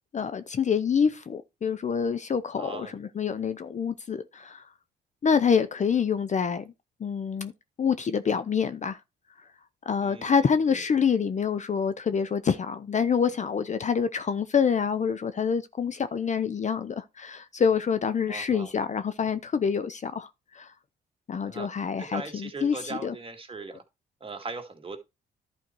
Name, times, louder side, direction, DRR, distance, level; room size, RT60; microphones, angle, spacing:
voice 1, 0.1-4.6 5.2-6.7 7.0-7.5 7.8-9.0 9.9-20.3 20.5-20.7 21.3-23.1, left 6 dB, 35° left, 0.7 m, -26 dB
voice 2, 2.6-3.0 10.0-10.8 18.3-18.7 21.4-21.7 22.0-23.8 24.2-25.0, right 3 dB, 25° right, 2.3 m, -39 dB
11.5 x 4.5 x 4.6 m
cardioid pair, 90°, 20 cm